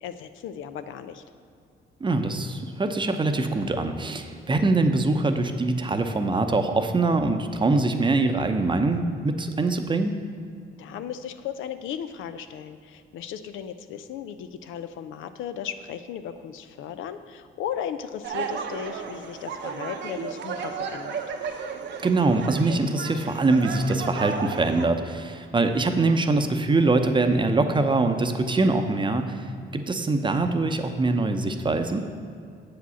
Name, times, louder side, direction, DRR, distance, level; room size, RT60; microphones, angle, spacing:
voice 1, 0.0-1.2 10.8-21.2, left 9 dB, 85° left, 10 dB, 0.5 m, -36 dB
voice 2, 2.0-10.2 22.0-29.4 29.7-32.0, right 3 dB, 25° right, 7 dB, 0.7 m, -23 dB
sound 1, 18.2-24.8, right 6 dB, 65° right, 0.8 m, -34 dB
7.4 x 5.0 x 6.9 m, 2.3 s
cardioid pair, 90°, 20 cm